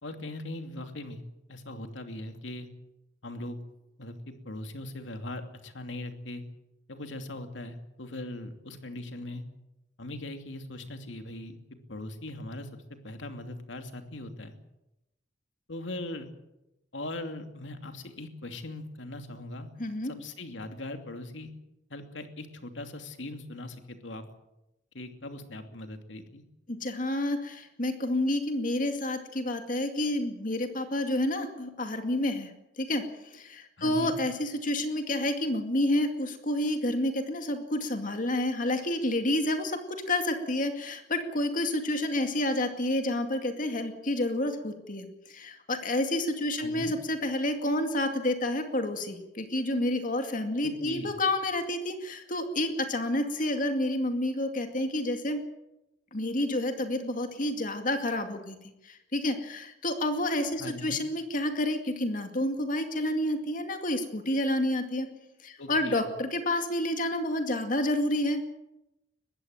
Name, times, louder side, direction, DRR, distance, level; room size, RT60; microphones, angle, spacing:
voice 1, 0.0-1.2 1.5-2.7 3.2-3.6 4.0-6.4 6.9-9.4 10.0-11.6 11.9-12.7 13.0-14.5 15.7-16.3 16.9-19.7 20.0-21.5 21.9-24.2 24.9-26.4 33.8-34.1 46.6-46.9 50.6-51.1 60.6-61.0 65.6-66.0, left 1 dB, 85° left, 6 dB, 2.7 m, -40 dB
voice 2, 19.8-20.1 26.7-55.4 56.1-65.1 65.4-68.5, left 1 dB, 45° left, 6 dB, 2.2 m, -29 dB
21.5 x 15.5 x 9.0 m, 0.91 s
head